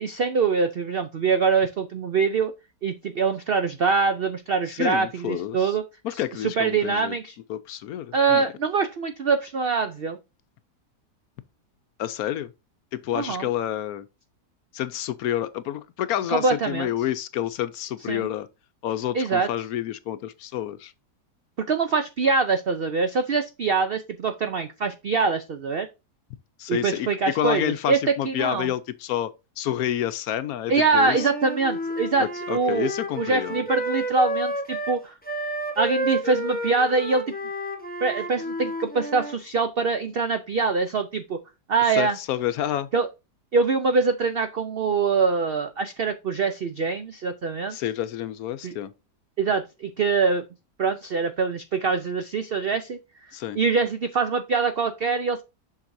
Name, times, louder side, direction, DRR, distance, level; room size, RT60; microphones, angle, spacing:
voice 1, 0.0-2.5 2.8-5.8 6.4-7.3 8.1-10.2 13.1-13.5 16.3-16.9 18.1-18.3 19.1-19.5 21.7-25.9 26.7-28.0 28.2-28.7 30.7-35.2 35.8-37.3 38.0-41.4 41.7-42.2 42.9-43.1 43.5-47.8 48.6-48.7 49.4-50.4 50.8-53.0 53.5-55.4, right 4 dB, 85° right, 0.5 m, -24 dB
voice 2, 4.7-5.8 6.0-7.1 7.5-8.5 12.0-12.5 12.9-14.1 14.7-18.5 18.8-20.9 26.6-27.1 27.3-29.3 29.6-31.3 32.2-33.6 41.9-42.9 47.7-48.9 53.3-53.6, left 11 dB, 70° left, 1.0 m, -29 dB
Wind instrument woodwind instrument, 31.0-39.4, equal, 5° left, 0.8 m, -31 dB
7.4 x 6.0 x 2.6 m
omnidirectional pair, 1.8 m